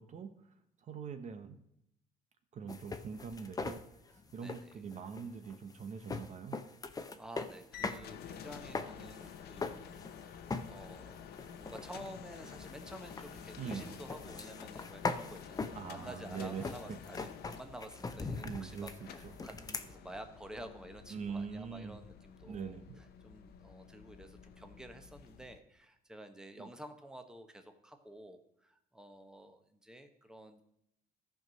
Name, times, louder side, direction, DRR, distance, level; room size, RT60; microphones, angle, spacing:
voice 1, 0.0-1.6 2.5-3.8 4.1-6.6 13.6-13.9 15.7-17.0 18.4-19.4 21.1-22.0 22.5-23.0 26.6-26.7, right 6 dB, 45° right, 8 dB, 0.8 m, -43 dB
sound 1, 2.7-8.0 8.3-10.2 10.5-10.9 11.3-19.9, left 4 dB, 20° left, 0.7 m, -41 dB
voice 2, 4.4-4.8 7.0-22.8 23.2-30.6, right 1 dB, 5° right, 6 dB, 1.0 m, -51 dB
sound 2, 7.7-25.6, left 8 dB, 70° left, 0.9 m, -51 dB
13.5 x 4.6 x 6.3 m, 0.78 s
cardioid pair, 110°, 17 cm